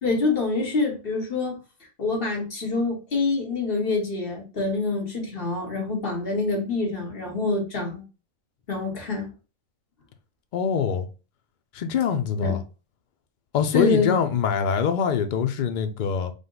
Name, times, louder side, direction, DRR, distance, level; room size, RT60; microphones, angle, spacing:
voice 1, 0.0-1.6 2.0-8.0 8.7-9.3 12.4-12.6 13.7-14.1, left 3 dB, 45° left, 1.4 m, -26 dB
voice 2, 10.5-11.0 11.7-12.6 13.5-16.3, left 7 dB, 65° left, 0.4 m, -24 dB
5.1 x 2.1 x 3.8 m
omnidirectional pair, 1.4 m